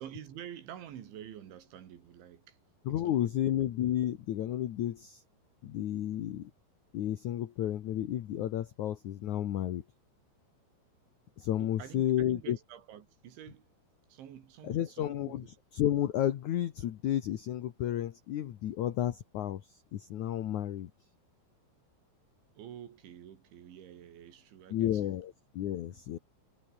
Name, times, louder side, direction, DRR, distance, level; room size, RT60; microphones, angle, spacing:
voice 1, 0.0-2.6 2.9-3.6 11.6-13.7 14.1-15.5 22.6-25.2 25.9-26.0, right 10 dB, 90° right, 5.1 m, -48 dB
voice 2, 2.8-5.2 5.6-6.5 6.9-9.8 11.4-12.6 14.6-15.4 15.7-20.9 24.7-26.2, left 12 dB, 65° left, 2.0 m, -32 dB
omnidirectional pair, 5.2 m